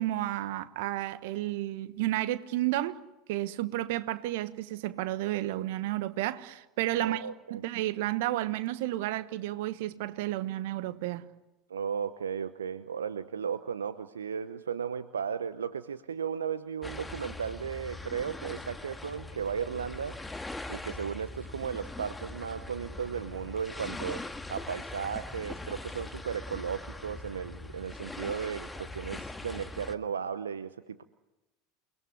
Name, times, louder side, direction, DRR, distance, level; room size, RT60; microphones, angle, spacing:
voice 1, 0.0-3.0 3.3-7.2 7.5-11.3, right 15 dB, 65° right, 1.3 m, -32 dB
voice 2, 6.9-7.6 11.7-20.2 20.7-24.2 24.5-31.0, right 7 dB, 80° right, 0.9 m, -35 dB
sound 1, 16.8-29.9, left 2 dB, 10° left, 1.8 m, -41 dB
29.0 x 20.5 x 9.7 m
figure-of-eight pair, 75°, 0 cm